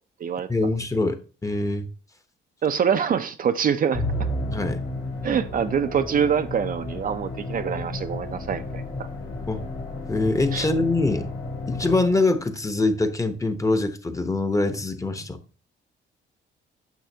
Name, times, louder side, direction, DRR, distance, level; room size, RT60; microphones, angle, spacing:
voice 1, 0.5-1.9 4.5-4.8 9.5-9.6 10.1-11.3 11.7-15.4, left 2 dB, 15° left, 0.9 m, -24 dB
voice 2, 2.6-4.0 5.2-9.1 10.5-10.7, right 7 dB, 45° right, 0.5 m, -25 dB
Musical instrument, 3.9-12.5, left 1 dB, 85° left, 3.1 m, -32 dB
9.1 x 6.2 x 2.7 m
cardioid pair, 90°, 20 cm